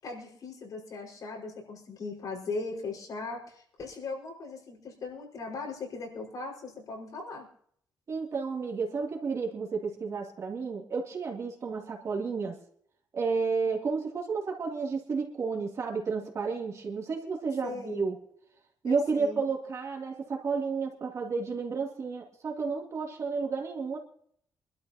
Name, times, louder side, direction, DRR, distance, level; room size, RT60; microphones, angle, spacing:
voice 1, 0.0-7.5 17.6-18.1 18.8-19.4, left 3 dB, 60° left, -1 dB, 5.3 m, -39 dB
voice 2, 8.1-12.6 13.1-18.1 18.8-24.0, right 5 dB, 45° right, -1 dB, 2.9 m, -31 dB
26.0 x 12.5 x 2.9 m, 0.66 s
cardioid pair, 135°, 7 cm